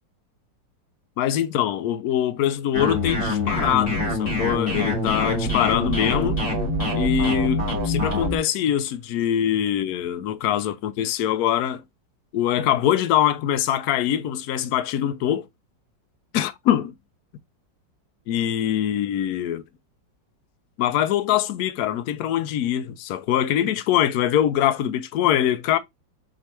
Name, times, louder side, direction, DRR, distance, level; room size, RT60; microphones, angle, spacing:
voice 1, 1.2-6.4 6.9-11.8 12.3-15.5 16.3-16.9 18.3-19.6 20.8-25.8, left 11 dB, 75° left, 0.9 m, -23 dB
sound 1, 2.7-8.4, left 1 dB, 40° left, 2.6 m, -25 dB
4.4 x 3.3 x 2.9 m
omnidirectional pair, 2.0 m